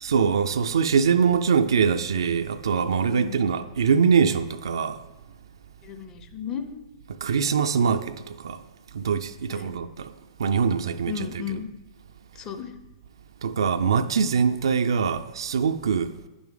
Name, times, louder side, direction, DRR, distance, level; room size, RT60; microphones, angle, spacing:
voice 1, 0.0-5.0 7.2-8.6 8.9-10.1 10.4-11.6 13.4-16.1, right 6 dB, 65° right, 0.4 m, -23 dB
voice 2, 3.1-3.4 5.8-6.8 9.5-9.8 11.1-11.7 12.4-12.7, left 8 dB, 25° left, 0.6 m, -34 dB
10.0 x 6.1 x 3.7 m
figure-of-eight pair, 105°, 3 cm